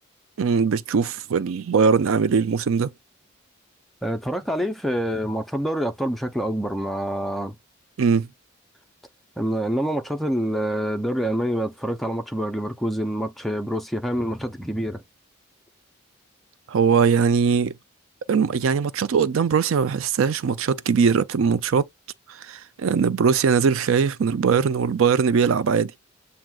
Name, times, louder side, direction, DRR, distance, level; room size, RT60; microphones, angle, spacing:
voice 1, 0.4-2.9 8.0-8.3 16.7-17.7 18.3-21.9 22.4-25.9, right 6 dB, 75° right, 0.4 m, -21 dB
voice 2, 4.0-7.6 9.4-15.0, equal, ahead, 0.5 m, -26 dB
7.4 x 2.8 x 2.3 m
head